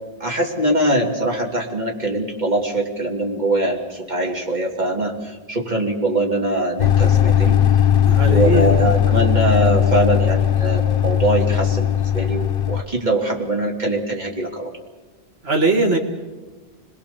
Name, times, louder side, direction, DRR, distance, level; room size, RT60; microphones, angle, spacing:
voice 1, 0.2-7.6 8.2-14.7, right 1 dB, 45° right, 0 dB, 3.3 m, -22 dB
sound 1, 6.8-12.8, left 9 dB, 65° left, 1.1 m, -17 dB
voice 2, 8.1-8.8 15.4-16.0, right 2 dB, 75° right, 1 dB, 2.3 m, -20 dB
27.0 x 20.5 x 7.1 m, 1.3 s
omnidirectional pair, 1.1 m